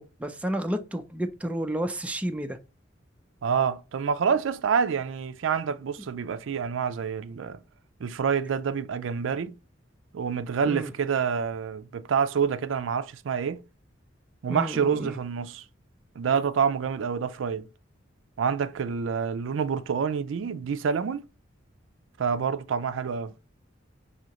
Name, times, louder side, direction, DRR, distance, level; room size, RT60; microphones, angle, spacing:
voice 1, 0.0-2.6 10.6-10.9 14.5-15.2, right 1 dB, 5° right, 0.4 m, -31 dB
voice 2, 3.4-7.6 8.0-9.6 10.1-13.6 14.4-15.6 16.2-17.7 18.4-21.3 22.2-23.3, right 6 dB, 80° right, 0.4 m, -27 dB
6.1 x 2.8 x 2.8 m
head